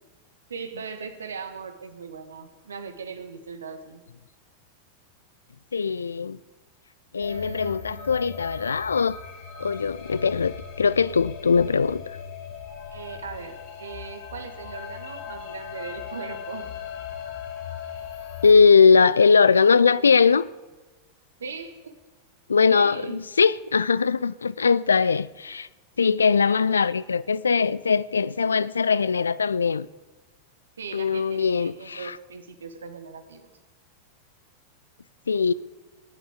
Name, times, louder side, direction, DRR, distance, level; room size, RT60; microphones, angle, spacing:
voice 1, 0.5-4.0 7.2-8.2 9.6-9.7 12.9-16.7 21.4-22.0 22.6-23.2 30.8-33.5, right 5 dB, 70° right, 1.4 m, -39 dB
voice 2, 5.7-6.4 7.1-9.2 9.6-12.0 18.4-20.5 22.5-25.7 26.0-29.9 30.9-32.2 35.3-35.5, left 5 dB, 75° left, 0.4 m, -20 dB
sound 1, 7.2-18.5, left 7 dB, 50° left, 3.5 m, -38 dB
19.0 x 10.5 x 5.1 m
figure-of-eight pair, 90°, 0 cm